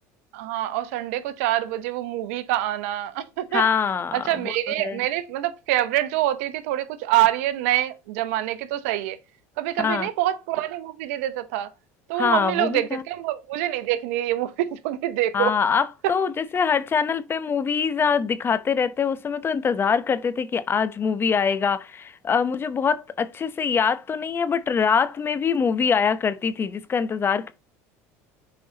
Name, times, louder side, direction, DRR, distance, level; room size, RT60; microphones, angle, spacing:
voice 1, 0.3-3.6 4.1-9.2 9.6-11.7 12.1-15.6 16.0-16.1, right 14 dB, 80° right, 0.8 m, -25 dB
voice 2, 3.5-4.5 4.8-5.0 9.8-10.1 12.2-13.0 15.3-27.5, left 6 dB, 30° left, 0.7 m, -24 dB
7.3 x 4.6 x 2.8 m
supercardioid pair, 90°, 8 cm